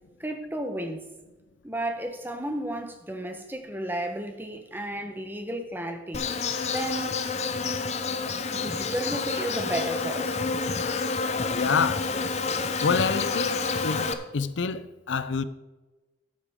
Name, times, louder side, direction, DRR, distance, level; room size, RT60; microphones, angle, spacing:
voice 1, 0.2-1.1 1.6-6.3 6.7-7.3 8.5-10.4, right 1 dB, 10° right, 1.0 m, -33 dB
Insect, 6.1-14.1, left 4 dB, 35° left, 0.6 m, -29 dB
voice 2, 11.5-12.1 12.8-15.4, left 5 dB, 90° left, 0.5 m, -28 dB
13.5 x 8.5 x 3.6 m
head